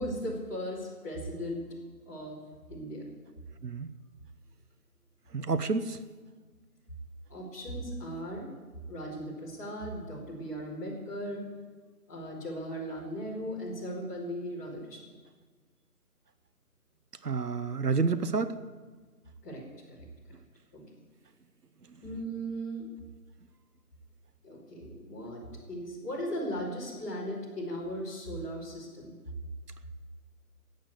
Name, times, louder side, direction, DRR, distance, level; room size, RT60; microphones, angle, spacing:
voice 1, 0.0-1.8 2.0-2.3 2.7-3.0 7.3-8.5 8.9-11.5 12.1-15.0 19.4-19.6 20.7-20.8 22.0-22.9 24.4-25.4 25.7-29.2, equal, 10° left, -10 dB, 2.7 m, -37 dB
voice 2, 5.3-6.0 17.2-18.6, right 4 dB, 90° right, 13 dB, 1.1 m, -29 dB
14.5 x 9.0 x 8.1 m, 1.4 s
figure-of-eight pair, 170°, 46 cm